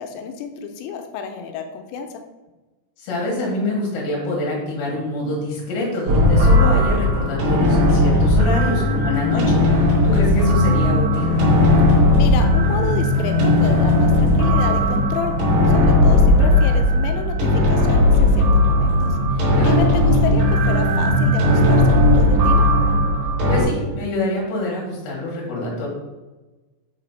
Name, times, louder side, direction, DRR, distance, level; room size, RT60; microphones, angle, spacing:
voice 1, 0.0-2.1 12.2-15.3 15.7-22.7, left 7 dB, 85° left, 5 dB, 3.1 m, -30 dB
voice 2, 3.0-11.3 19.5-19.8 23.5-25.9, left 1 dB, 60° left, -3 dB, 3.3 m, -26 dB
sound 1, 6.1-23.6, left 1 dB, 70° right, 2.7 m, -16 dB
7.9 x 3.2 x 4.0 m, 1.1 s
omnidirectional pair, 5.8 m